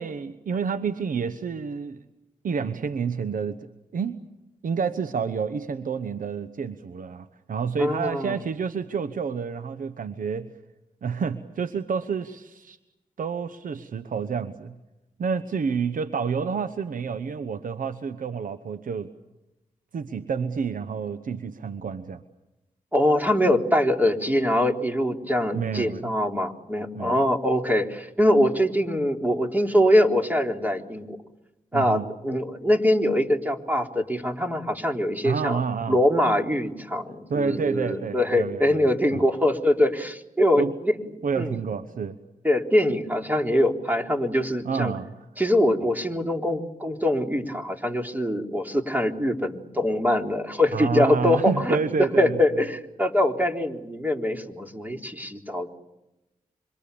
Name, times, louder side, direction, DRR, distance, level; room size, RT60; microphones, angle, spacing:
voice 1, 0.0-2.0 2.4-4.2 4.6-10.5 11.0-12.8 13.2-14.7 15.2-19.1 19.9-22.2 25.5-26.1 26.9-27.2 31.7-32.1 35.2-36.0 37.3-39.2 40.6-40.7 41.2-42.2 44.6-45.1 50.7-52.4, right 6 dB, 70° right, 12 dB, 1.1 m, -29 dB
voice 2, 7.8-8.4 22.9-31.2 31.7-35.6 35.9-41.6 42.4-44.9 45.4-55.7, left 1 dB, 10° right, 3 dB, 4.0 m, -23 dB
27.0 x 26.5 x 7.0 m, 0.94 s
supercardioid pair, 40°, 14 cm